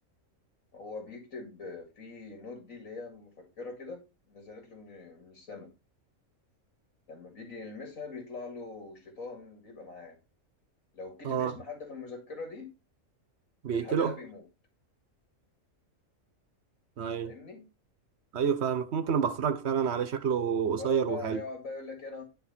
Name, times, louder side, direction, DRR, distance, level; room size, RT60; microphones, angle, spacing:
voice 1, 0.7-5.7 7.1-10.2 10.9-12.7 13.7-14.5 17.2-17.7 20.8-22.2, left 3 dB, 90° left, 2.5 m, -42 dB
voice 2, 13.6-14.1 17.0-17.3 18.3-21.4, right 7 dB, 60° right, 1.1 m, -28 dB
10.0 x 4.7 x 4.2 m
omnidirectional pair, 1.4 m